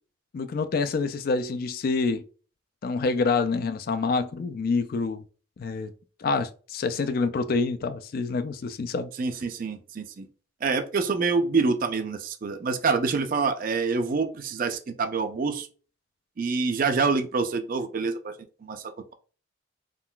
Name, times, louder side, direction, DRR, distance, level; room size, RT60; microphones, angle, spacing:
voice 1, 0.3-2.2 2.8-5.2 5.6-5.9 6.2-9.1, left 4 dB, 50° left, 0.3 m, -27 dB
voice 2, 9.2-10.3 10.6-15.7 16.4-18.3 18.6-19.1, right 4 dB, 45° right, 0.4 m, -26 dB
3.7 x 2.4 x 2.2 m
head